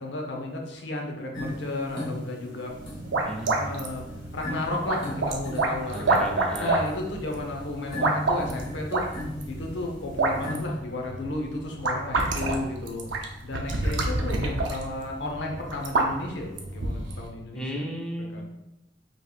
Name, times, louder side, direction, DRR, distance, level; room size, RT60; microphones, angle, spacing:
voice 1, 0.0-2.7 3.6-4.0 4.3-6.2 6.6-9.2 9.5-13.1 13.4-17.8 18.3-18.4, left 2 dB, 70° left, 1 dB, 0.8 m, -33 dB
sound 1, 1.3-10.7, left 1 dB, 25° left, 1.0 m, -38 dB
sound 2, 2.7-17.3, right 2 dB, 75° right, 0.6 m, -29 dB
voice 2, 3.3-3.6 5.9-6.8 17.5-18.4, equal, 5° left, 0 dB, 0.4 m, -33 dB
5.2 x 3.2 x 2.3 m, 0.90 s
head